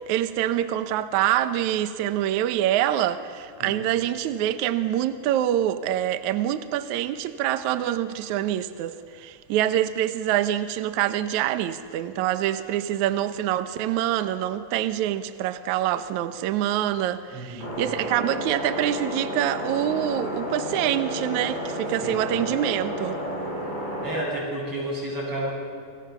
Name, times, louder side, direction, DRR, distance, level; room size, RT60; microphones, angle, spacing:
voice 1, 0.0-23.2, right 12 dB, 70° right, 2.0 m, -25 dB
voice 2, 17.3-17.7 22.0-22.2 24.0-25.5, right 1 dB, 40° right, 8.3 m, -31 dB
sound 1, 17.6-24.2, equal, 25° left, 7.5 m, -31 dB
30.0 x 24.5 x 6.9 m
omnidirectional pair, 4.2 m